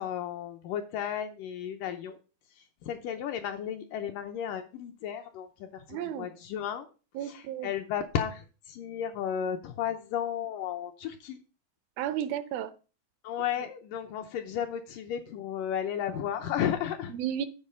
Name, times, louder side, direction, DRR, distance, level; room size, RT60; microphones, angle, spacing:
voice 1, 0.0-2.2 2.6-6.9 7.2-11.4 13.2-17.1, left 9 dB, 75° left, 2.1 m, -34 dB
voice 2, 5.9-6.3 7.2-7.7 12.0-12.7 17.1-17.5, right 10 dB, 80° right, 2.4 m, -33 dB
9.7 x 4.6 x 6.7 m
omnidirectional pair, 4.4 m